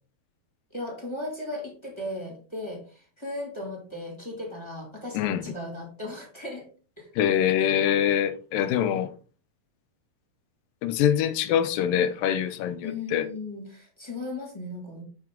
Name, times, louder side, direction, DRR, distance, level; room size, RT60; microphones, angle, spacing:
voice 1, 0.7-6.6 7.0-7.1 12.8-15.0, left 2 dB, 10° left, 1.8 m, -36 dB
voice 2, 7.2-9.1 10.8-13.3, left 9 dB, 80° left, 2.3 m, -24 dB
7.5 x 6.2 x 3.7 m
omnidirectional pair, 4.1 m